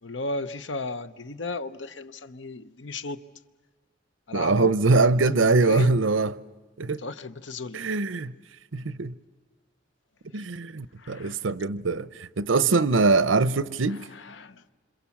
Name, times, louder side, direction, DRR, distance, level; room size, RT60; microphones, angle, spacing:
voice 1, 0.0-3.2 4.3-4.7 5.3-5.9 7.0-7.8 10.3-10.5 11.0-11.5 13.9-14.6, left 3 dB, 65° left, 0.9 m, -35 dB
voice 2, 4.3-6.3 6.8-7.0 7.7-8.3 8.7-9.1 10.3-14.1, right 3 dB, 80° right, 0.8 m, -23 dB
27.5 x 26.5 x 7.3 m
head